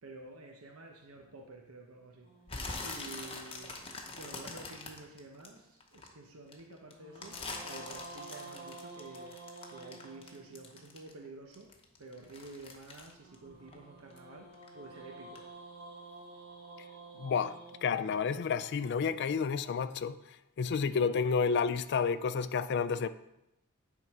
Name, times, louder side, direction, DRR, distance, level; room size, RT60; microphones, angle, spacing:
voice 1, 0.0-2.3 2.8-3.8 4.2-9.4 9.7-15.4, right 2 dB, 85° right, 0.9 m, -50 dB
sound 1, 2.2-4.6 6.9-11.0 13.2-19.4, right 3 dB, 45° right, 2.2 m, -51 dB
sound 2, 2.5-6.1 6.5-11.3 11.5-14.2 14.5-14.9 15.3-15.4, left 3 dB, 25° left, 0.9 m, -43 dB
voice 2, 17.2-20.2 20.6-23.1, left 6 dB, 50° left, 0.4 m, -30 dB
9.2 x 3.8 x 4.7 m
head